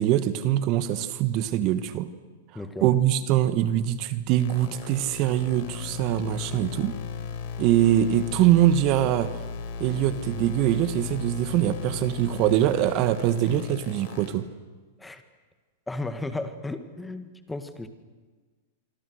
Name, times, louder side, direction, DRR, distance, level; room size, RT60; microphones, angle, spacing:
voice 1, 0.0-2.1 2.8-7.0 7.6-9.4 9.8-14.5, right 12 dB, 45° right, 12 dB, 1.5 m, -23 dB
voice 2, 2.5-2.9 15.0-15.2 15.9-17.9, left 2 dB, 10° left, 8 dB, 2.1 m, -34 dB
sound 1, 4.4-14.3, left 6 dB, 55° left, 5.3 m, -36 dB
26.5 x 25.0 x 6.6 m, 1.4 s
hypercardioid pair, 115°, 0 cm